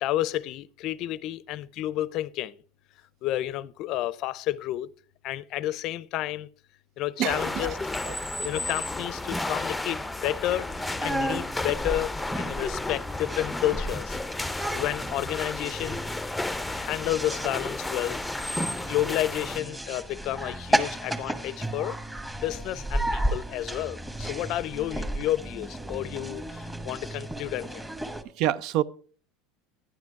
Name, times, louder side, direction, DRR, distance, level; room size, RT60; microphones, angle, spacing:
voice 1, 0.0-2.5 3.2-4.9 5.2-6.5 7.0-7.8 8.4-10.7 11.0-14.2 14.7-16.0 16.8-18.2 18.9-22.0 22.4-27.9, left 14 dB, 55° left, 0.5 m, -31 dB
voice 2, 7.2-7.8 8.0-8.2 28.4-28.8, right 12 dB, 60° right, 0.6 m, -27 dB
sound 1, 7.3-19.6, left 2 dB, 5° left, 0.6 m, -33 dB
sound 2, 10.5-28.2, right 1 dB, 10° right, 1.3 m, -33 dB
11.5 x 9.7 x 4.6 m
supercardioid pair, 100°, 0 cm